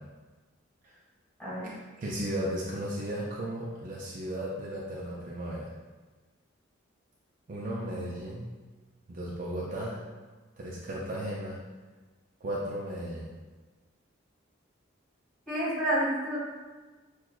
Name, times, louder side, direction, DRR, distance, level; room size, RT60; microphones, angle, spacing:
voice 1, 1.4-1.7 15.5-16.4, right 1 dB, 5° left, -10 dB, 1.5 m, -29 dB
voice 2, 2.0-5.7 7.5-8.5 9.1-10.1 10.6-11.6 12.4-13.3, right 1 dB, 40° right, -5 dB, 0.4 m, -35 dB
6.0 x 2.3 x 2.3 m, 1.3 s
head